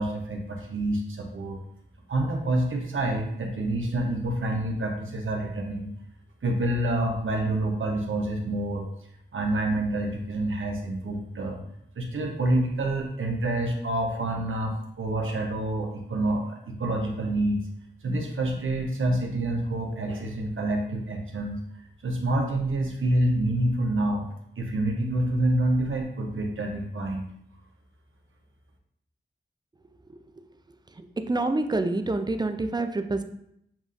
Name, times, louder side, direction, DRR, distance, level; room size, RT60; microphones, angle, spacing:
voice 1, 0.0-1.6 2.1-5.9 6.4-8.8 9.3-11.6 12.0-17.6 18.0-21.6 22.0-24.2 24.6-27.3, right 1 dB, 80° right, 1 dB, 0.8 m, -27 dB
voice 2, 31.0-33.2, right 2 dB, 20° right, 8 dB, 0.4 m, -27 dB
7.0 x 2.4 x 2.5 m, 0.73 s
cardioid pair, 40°, 20 cm